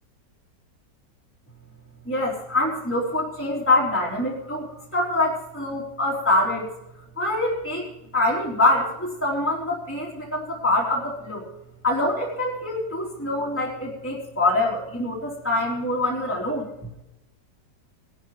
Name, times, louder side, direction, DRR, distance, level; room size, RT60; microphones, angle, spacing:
voice 1, 2.1-6.7 7.2-11.4 11.8-16.7, left 2 dB, 5° left, -6 dB, 3.6 m, -25 dB
21.5 x 11.5 x 3.2 m, 0.90 s
omnidirectional pair, 1.9 m